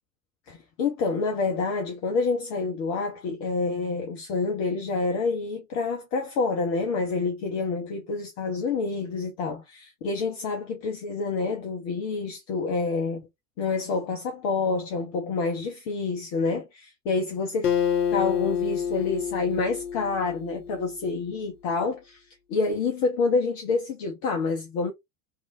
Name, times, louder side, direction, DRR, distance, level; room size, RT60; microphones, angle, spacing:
voice 1, 0.5-13.2 13.6-17.7 18.1-24.9, left 4 dB, 25° left, 0.3 m, -28 dB
Acoustic guitar, 17.6-21.1, left 8 dB, 80° left, 0.7 m, -28 dB
2.9 x 2.3 x 2.5 m
figure-of-eight pair, 85°, 48 cm